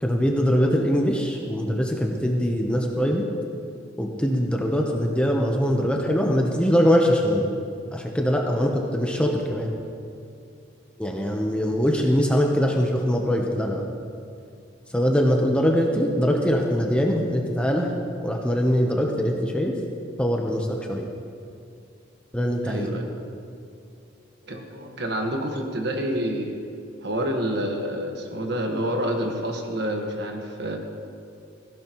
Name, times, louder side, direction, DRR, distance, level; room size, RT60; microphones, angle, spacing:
voice 1, 0.0-3.2 4.0-7.5 7.9-9.7 11.0-13.8 14.9-17.9 18.2-19.8 20.2-21.1 22.3-22.9, equal, 5° left, 0 dB, 0.8 m, -22 dB
voice 2, 22.6-23.1 24.4-26.6 27.0-30.8, equal, 55° right, 2 dB, 1.4 m, -28 dB
17.5 x 15.5 x 3.1 m, 2.5 s
head